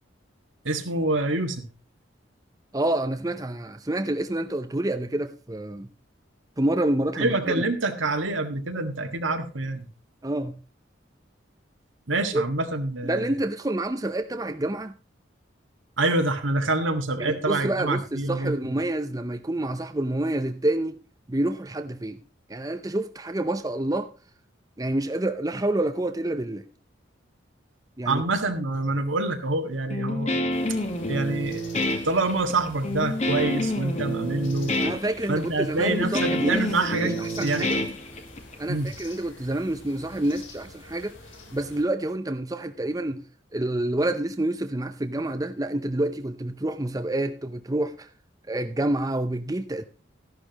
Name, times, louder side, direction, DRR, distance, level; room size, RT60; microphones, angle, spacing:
voice 1, 0.6-1.7 7.2-9.9 12.1-13.3 16.0-18.6 28.1-30.4 31.1-31.6 32.0-34.7 35.3-37.7 38.7-38.9, right 2 dB, 85° right, 1.8 m, -26 dB
voice 2, 2.7-5.9 6.6-7.6 10.2-10.6 12.3-12.4 13.0-15.0 17.2-21.0 21.3-22.2 22.5-24.1 24.8-26.7 28.0-28.2 34.8-36.6 37.0-37.8 38.6-41.1 41.5-43.2 43.5-48.1 48.5-49.8, right 1 dB, 20° right, 0.6 m, -28 dB
Guitar, 29.9-38.5, left 1 dB, 35° left, 1.5 m, -28 dB
sound 1, 30.5-41.8, left 3 dB, 80° left, 3.8 m, -46 dB
14.0 x 11.0 x 3.0 m
head